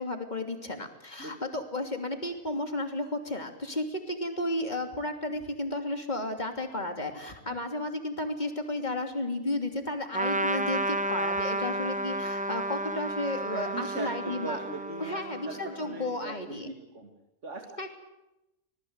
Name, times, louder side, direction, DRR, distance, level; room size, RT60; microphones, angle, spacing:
voice 1, 0.0-14.6 15.0-16.7 17.8-17.9, left 1 dB, 30° left, 5 dB, 3.1 m, -33 dB
Trumpet, 10.1-16.0, right 1 dB, 10° right, 0.5 m, -32 dB
voice 2, 13.5-17.1 17.4-17.6, right 3 dB, 50° right, 3 dB, 2.8 m, -40 dB
26.0 x 20.0 x 8.1 m, 0.92 s
omnidirectional pair, 1.6 m